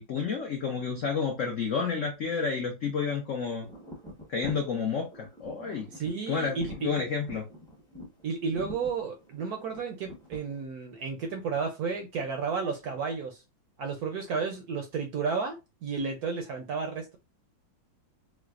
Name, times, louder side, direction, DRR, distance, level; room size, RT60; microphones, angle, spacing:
voice 1, 0.0-3.7 4.3-5.9 6.3-7.4, left 5 dB, 75° left, 2 dB, 0.7 m, -30 dB
sound 1, 3.6-10.6, equal, 5° left, 0.5 m, -44 dB
voice 2, 5.9-7.1 8.2-13.4 13.8-15.6 15.8-17.2, right 5 dB, 70° right, 4 dB, 0.9 m, -32 dB
4.8 x 2.0 x 2.4 m, 0.25 s
omnidirectional pair, 2.1 m